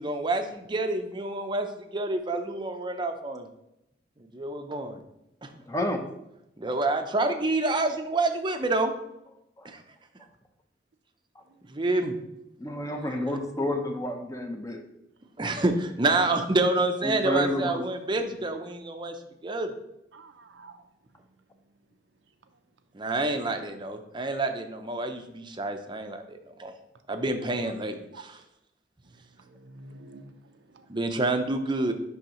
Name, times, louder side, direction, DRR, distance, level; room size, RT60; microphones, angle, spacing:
voice 1, 0.0-1.7 1.9-3.5 4.3-5.0 5.4-5.5 6.6-8.9 9.6-9.8 11.7-12.2 15.4-19.2 19.4-19.7 22.9-26.7 27.1-28.0 30.9-31.9, right 2 dB, 25° right, 6 dB, 0.6 m, -28 dB
voice 2, 5.7-6.0 9.6-9.7 12.6-14.8 17.0-17.8, left 1 dB, 15° left, 4 dB, 0.7 m, -30 dB
voice 3, 20.1-20.9 22.5-22.6 28.1-28.2 29.0-31.0, right 3 dB, 70° right, 7 dB, 0.6 m, -49 dB
10.0 x 3.5 x 3.0 m, 0.84 s
head